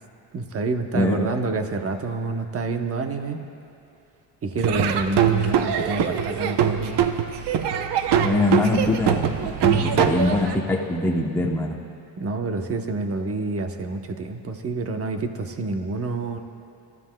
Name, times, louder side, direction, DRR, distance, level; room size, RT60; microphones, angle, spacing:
voice 1, 0.3-3.4 4.4-7.1 12.2-16.4, right 3 dB, 30° right, 6 dB, 0.9 m, -28 dB
voice 2, 0.9-1.3 8.2-9.3 9.6-11.8, left 2 dB, 5° left, -1 dB, 0.8 m, -22 dB
Laughter / Drum, 4.6-10.6, right 9 dB, 60° right, 0.8 m, -23 dB
26.0 x 13.5 x 2.3 m, 2.6 s
cardioid pair, 125°, 45 cm